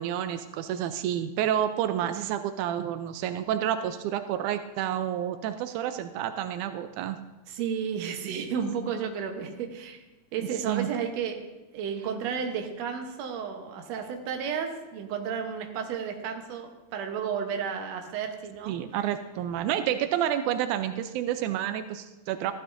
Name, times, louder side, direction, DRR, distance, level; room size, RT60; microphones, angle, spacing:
voice 1, 0.0-7.2 10.7-10.9 18.7-22.5, right 10 dB, 90° right, 9 dB, 2.0 m, -29 dB
voice 2, 7.5-10.0 10.3-11.4 11.7-18.7, right 7 dB, 65° right, 4 dB, 2.1 m, -32 dB
14.5 x 12.0 x 2.6 m, 1.1 s
omnidirectional pair, 3.4 m